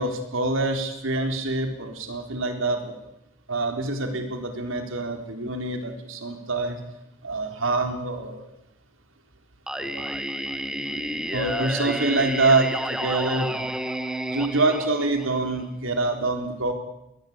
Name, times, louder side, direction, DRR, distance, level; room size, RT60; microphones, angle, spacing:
voice 1, 0.0-3.0 3.5-6.8 7.2-8.4 9.8-10.2 11.3-13.7 14.3-16.7, right 2 dB, 75° right, 5 dB, 3.8 m, -26 dB
Singing, 9.7-15.6, right 1 dB, 5° right, 1.3 m, -30 dB
21.0 x 20.0 x 8.7 m, 0.87 s
head